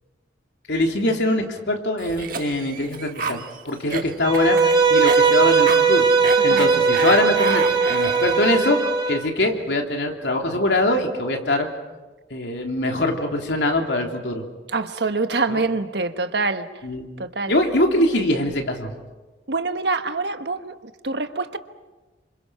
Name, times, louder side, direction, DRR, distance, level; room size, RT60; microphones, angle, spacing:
voice 1, 0.7-3.4 3.6-6.1 6.4-11.7 12.3-14.4 15.5-15.6 16.8-17.1 17.5-18.9, left 1 dB, 80° left, 3.2 m, -23 dB
Cough, 2.0-8.6, right 4 dB, 55° right, 1.4 m, -30 dB
Bowed string instrument, 4.2-9.2, right 5 dB, 25° right, 1.8 m, -18 dB
voice 2, 6.5-6.8 14.7-16.7 17.2-17.6 19.5-20.7 21.0-21.6, right 3 dB, 70° right, 1.3 m, -25 dB
29.0 x 26.0 x 5.8 m
head